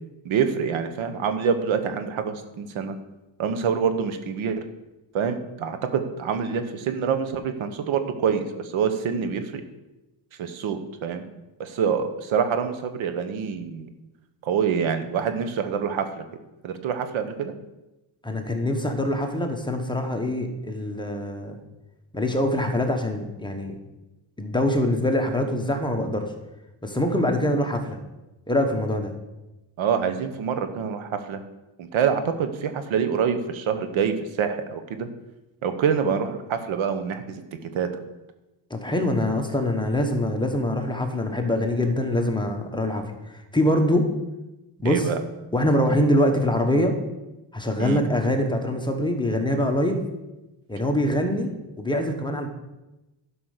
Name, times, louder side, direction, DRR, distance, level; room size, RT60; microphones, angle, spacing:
voice 1, 0.2-2.9 3.4-4.6 5.1-9.6 10.4-11.3 11.6-13.9 14.4-16.2 16.6-17.5 29.8-31.4 31.8-35.1 35.6-37.4 37.7-38.0 44.8-45.2 47.8-48.0, right 7 dB, 75° right, 9 dB, 1.2 m, -26 dB
voice 2, 18.2-21.6 22.1-23.8 24.4-26.3 26.8-28.0 28.5-29.1 38.7-44.1 44.8-45.1 45.5-47.0 47.5-50.0 50.7-51.5 51.8-52.5, left 1 dB, 10° left, 3 dB, 1.2 m, -24 dB
11.5 x 5.4 x 6.6 m, 1.0 s
cardioid pair, 130°, 47 cm